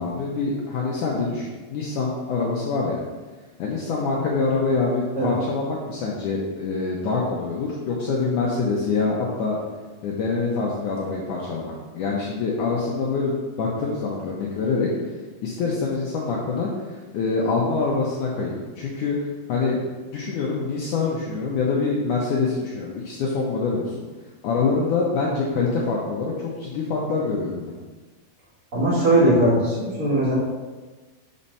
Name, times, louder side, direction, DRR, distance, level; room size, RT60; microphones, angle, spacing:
voice 1, 0.0-3.0 3.6-9.6 10.0-14.9 15.4-16.7 17.1-19.2 19.5-19.8 20.1-24.0 24.4-27.7, left 4 dB, 70° left, -3 dB, 2.0 m, -25 dB
voice 2, 28.7-30.3, right 1 dB, 25° right, -7 dB, 1.9 m, -19 dB
6.3 x 5.6 x 5.5 m, 1.3 s
omnidirectional pair, 4.6 m